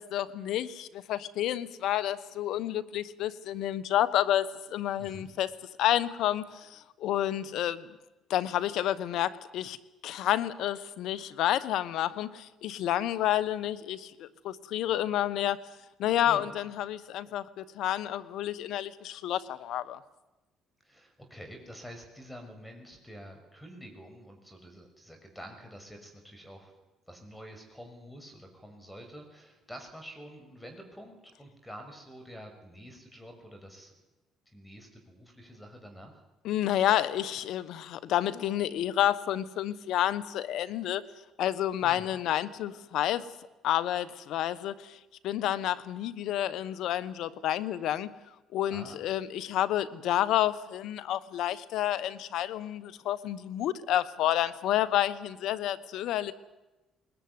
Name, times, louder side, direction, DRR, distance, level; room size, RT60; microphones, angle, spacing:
voice 1, 0.0-5.5 5.8-7.8 8.3-9.8 10.0-15.6 16.0-20.0 36.4-41.0 41.4-43.2 43.6-45.0 45.2-48.1 48.5-56.3, left 12 dB, 75° left, 17 dB, 1.2 m, -29 dB
voice 2, 20.8-26.7 27.1-33.9 34.5-36.2 41.8-42.2 48.7-49.0, equal, 5° left, 4 dB, 6.1 m, -48 dB
21.0 x 20.0 x 9.7 m, 1.0 s
supercardioid pair, 70°, 0 cm